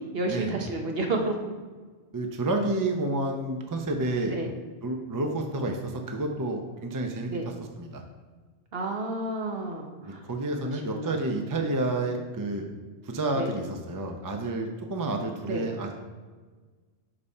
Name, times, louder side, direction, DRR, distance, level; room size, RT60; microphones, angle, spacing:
voice 1, 0.0-1.4 4.3-4.5 7.3-7.5 8.7-10.2 10.9-11.3 13.3-13.5 15.4-15.7, right 2 dB, 55° right, 2 dB, 1.1 m, -31 dB
voice 2, 2.1-4.4 4.8-8.0 10.0-12.7 13.0-15.9, right 2 dB, 25° right, 3 dB, 0.5 m, -30 dB
5.4 x 4.1 x 5.4 m, 1.4 s
omnidirectional pair, 1.2 m